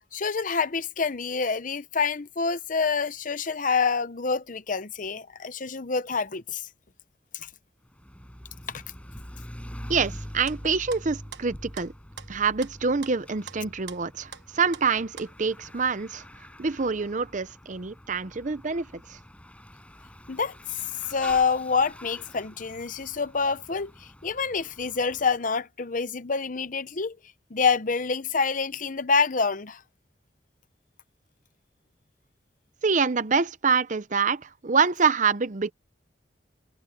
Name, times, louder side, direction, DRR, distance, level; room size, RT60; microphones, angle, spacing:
voice 1, 0.1-6.7 7.3-7.5 8.7-8.8 20.3-20.5 21.1-27.2 27.5-29.8, left 5 dB, 45° left, 0.8 m, -27 dB
Bicycle / Mechanisms, 7.8-25.4, equal, 5° left, 7.9 m, -45 dB
voice 2, 9.9-11.9 12.3-16.2 16.6-19.2 32.8-35.7, right 5 dB, 45° right, 0.7 m, -26 dB
sound 1, 10.5-12.7 13.0-14.4 14.7-15.4, right 8 dB, 80° right, 1.2 m, -44 dB
head